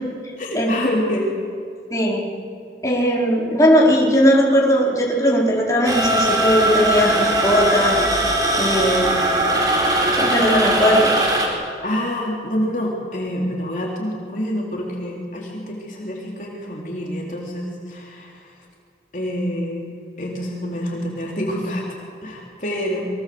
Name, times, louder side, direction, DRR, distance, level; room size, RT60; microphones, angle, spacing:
voice 1, 0.4-1.3 11.8-18.5 19.1-23.1, equal, 45° left, -2 dB, 3.7 m, -27 dB
voice 2, 1.9-2.2 2.8-8.0 8.6-9.1 10.2-11.2, equal, 20° left, -4 dB, 4.6 m, -18 dB
sound 1, 5.8-11.5, right 1 dB, 20° right, 4.3 m, -20 dB
27.0 x 23.0 x 7.9 m, 2.4 s
head